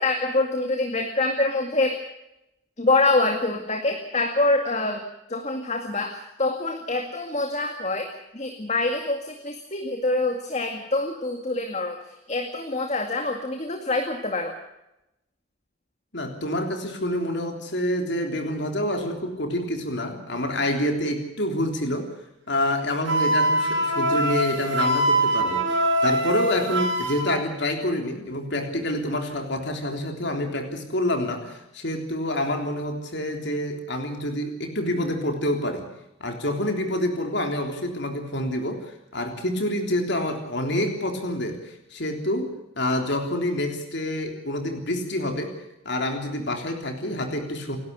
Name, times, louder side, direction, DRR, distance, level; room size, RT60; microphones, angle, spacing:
voice 1, 0.0-2.0 2.8-5.0 5.3-12.0 12.3-14.6, left 2 dB, 30° left, 4 dB, 2.1 m, -25 dB
voice 2, 16.1-22.1 22.5-35.9 36.2-45.5 45.8-47.8, left 1 dB, 55° left, 4 dB, 3.4 m, -27 dB
Wind instrument woodwind instrument, 23.1-27.3, right 1 dB, 60° right, 5.8 m, -23 dB
29.0 x 12.0 x 8.1 m, 0.88 s
head